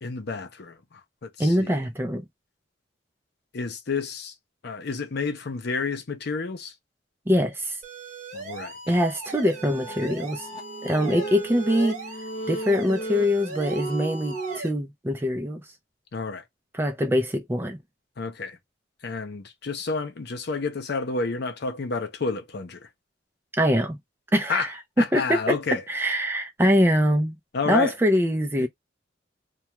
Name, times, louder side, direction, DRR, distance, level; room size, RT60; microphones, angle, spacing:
voice 1, 0.0-0.8 1.2-1.8 3.5-4.3 4.6-6.7 8.3-8.7 16.1-16.4 18.2-18.6 19.0-22.8 24.5-24.7 25.0-25.8 27.5-27.9 28.6-28.7, left 4 dB, 60° left, 0.6 m, -30 dB
voice 2, 1.4-2.2 7.3-7.8 8.9-10.5 10.8-12.0 12.5-15.6 16.7-17.8 23.6-24.0 24.3-27.4 27.7-28.7, equal, 10° right, 0.5 m, -23 dB
sound 1, 7.8-14.7, right 3 dB, 40° right, 1.1 m, -39 dB
sound 2, 9.3-14.6, right 3 dB, 25° left, 0.6 m, -35 dB
2.3 x 2.3 x 2.8 m
head